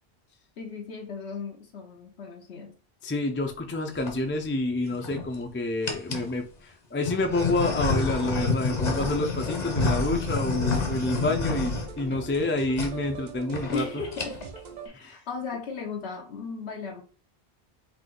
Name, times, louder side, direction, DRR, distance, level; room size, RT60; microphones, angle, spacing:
voice 1, 0.6-2.8 13.7-14.5 14.8-17.0, left 5 dB, 80° left, 1.1 m, -36 dB
voice 2, 3.0-14.0 15.0-15.2, left 2 dB, 15° left, 0.4 m, -28 dB
sound 1, 3.7-4.1 4.8-5.4 5.8-6.3 7.0-12.5 12.7-12.9 13.2-13.3 13.5-13.8 14.1-14.6, left 3 dB, 45° left, 0.8 m, -29 dB
sound 2, 7.5-14.9, right 6 dB, 50° right, 0.7 m, -42 dB
4.0 x 2.8 x 3.8 m
omnidirectional pair, 1.1 m